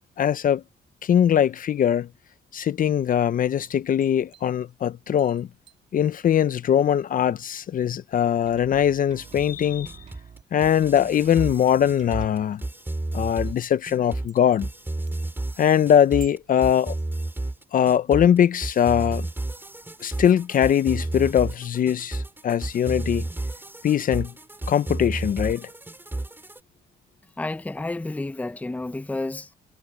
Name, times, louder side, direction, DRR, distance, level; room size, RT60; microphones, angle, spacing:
voice 1, 0.2-0.6 1.0-2.1 2.5-5.5 5.9-10.0 10.5-12.6 13.1-14.7 15.6-16.9 17.7-19.3 20.0-23.3 23.8-24.3 24.7-25.7, left 9 dB, 50° left, 0.6 m, -21 dB
sound 1, 3.6-7.1 7.3-17.4, right 12 dB, 80° right, 7.7 m, -56 dB
sound 2, 8.5-12.5, right 6 dB, 40° right, 2.5 m, -47 dB
sound 3, 9.2-26.6, right 2 dB, 10° right, 3.4 m, -32 dB
voice 2, 27.4-29.5, left 2 dB, 10° left, 0.6 m, -30 dB
cardioid pair, 115°, 18 cm